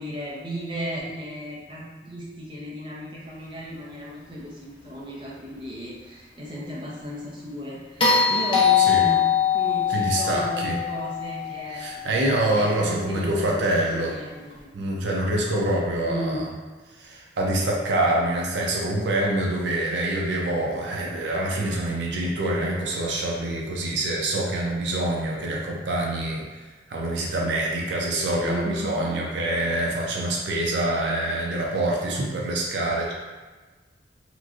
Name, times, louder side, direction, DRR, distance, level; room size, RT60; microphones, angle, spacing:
voice 1, 0.0-12.0 12.5-14.9 16.1-16.6 28.4-28.9, right 1 dB, 25° right, -6 dB, 0.5 m, -35 dB
sound 1, 8.0-12.3 14.5-14.6, left 7 dB, 30° left, 0.5 m, -22 dB
voice 2, 9.9-10.8 11.8-14.1 14.7-16.5 17.0-26.4 26.9-33.1, right 1 dB, 75° right, -2 dB, 0.5 m, -25 dB
3.0 x 2.5 x 2.4 m, 1.3 s
head